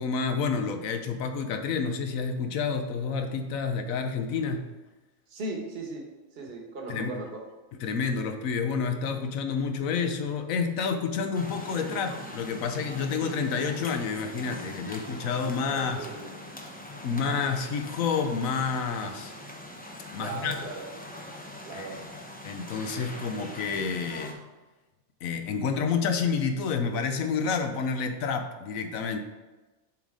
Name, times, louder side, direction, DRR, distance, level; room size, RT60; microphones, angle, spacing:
voice 1, 0.0-4.7 6.9-7.1 7.8-16.0 17.0-19.3 20.1-20.6 21.7-21.9 22.4-24.4 25.2-29.2, left 5 dB, 90° left, 6 dB, 1.1 m, -29 dB
voice 2, 5.3-6.0 6.3-7.4 15.7-16.3 20.2-20.9 21.6-22.0, right 2 dB, 50° right, 0 dB, 1.3 m, -37 dB
sound 1, 11.3-24.3, left 1 dB, 10° left, 0.4 m, -42 dB
7.1 x 4.1 x 4.8 m, 1.2 s
omnidirectional pair, 1.4 m